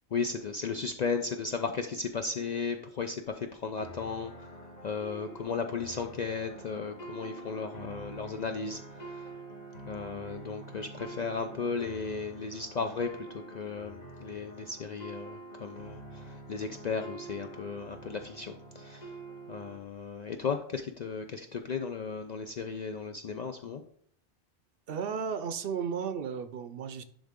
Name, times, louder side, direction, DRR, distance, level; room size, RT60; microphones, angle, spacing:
voice 1, 0.1-9.3 9.9-19.2 19.5-23.8, left 5 dB, 60° left, 6 dB, 0.4 m, -35 dB
sound 1, 3.8-19.8, right 2 dB, 40° left, 1.3 m, -46 dB
voice 2, 24.9-27.0, right 6 dB, 65° right, 11 dB, 0.7 m, -34 dB
10.5 x 3.6 x 3.6 m, 0.63 s
omnidirectional pair, 1.1 m